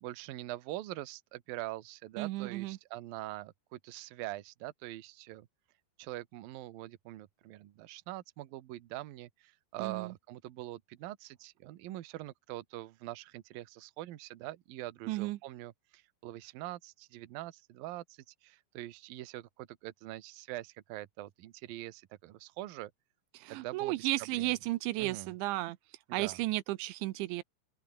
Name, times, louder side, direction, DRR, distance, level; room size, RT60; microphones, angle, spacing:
voice 1, 0.0-5.5 6.0-22.9 23.5-24.5 25.0-25.3 26.1-26.4, right 16 dB, 65° right, 2.6 m, -44 dB
voice 2, 2.2-2.8 9.8-10.1 15.1-15.4 23.4-25.8 26.1-27.4, right 18 dB, 85° right, 3.2 m, -34 dB
open air
omnidirectional pair, 5.2 m